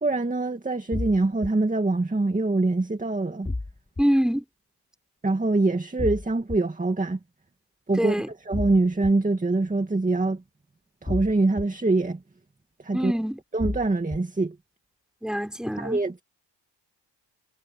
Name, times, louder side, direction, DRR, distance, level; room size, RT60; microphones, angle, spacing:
voice 1, 0.0-3.5 5.2-7.2 7.9-8.2 8.5-10.4 11.0-12.2 12.8-13.1 13.5-14.6 15.8-16.2, right 2 dB, 15° right, 2.2 m, -24 dB
sound 1, 0.9-1.5 3.5-4.0 6.0-6.6 8.5-9.1 11.1-11.6 13.6-14.2, left 2 dB, 15° left, 2.9 m, -30 dB
voice 2, 4.0-4.4 8.0-8.3 12.9-13.4 15.2-16.0, equal, ahead, 5.2 m, -25 dB
cardioid pair, 70°, 45 cm